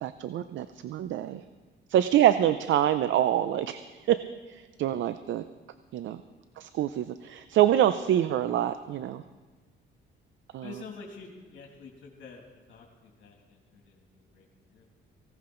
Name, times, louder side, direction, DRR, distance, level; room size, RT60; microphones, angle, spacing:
voice 1, 0.0-1.4 1.9-3.8 4.1-4.2 4.5-5.4 5.9-6.2 6.6-9.2 10.5-10.7, right 11 dB, 70° right, 12 dB, 0.5 m, -25 dB
voice 2, 10.6-12.4 12.7-14.8, left 4 dB, 70° left, 0 dB, 2.5 m, -48 dB
18.5 x 16.5 x 3.8 m, 1.3 s
cardioid pair, 90°, 20 cm